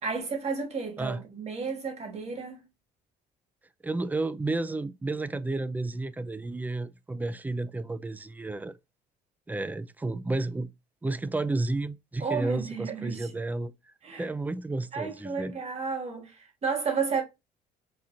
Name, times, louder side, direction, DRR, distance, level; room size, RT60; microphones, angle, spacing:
voice 1, 0.0-2.6 12.2-13.3 14.0-14.3 14.9-17.2, right 5 dB, 40° right, 1.6 m, -32 dB
voice 2, 3.8-8.7 9.5-10.7 11.0-13.7 14.1-15.5, right 2 dB, 10° right, 0.3 m, -31 dB
5.8 x 2.4 x 2.6 m
cardioid pair, 110°, 17 cm